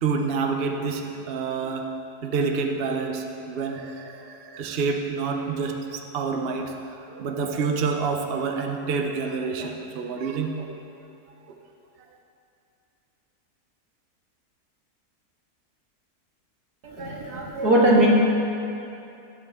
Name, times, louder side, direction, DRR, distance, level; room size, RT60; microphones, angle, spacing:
voice 1, 0.0-1.9 2.2-10.7 11.5-11.6, right 5 dB, 45° right, 3 dB, 0.8 m, -28 dB
voice 2, 16.8-18.1, right 1 dB, 80° right, -3 dB, 2.3 m, -20 dB
18.0 x 8.1 x 3.6 m, 2.7 s
omnidirectional pair, 1.7 m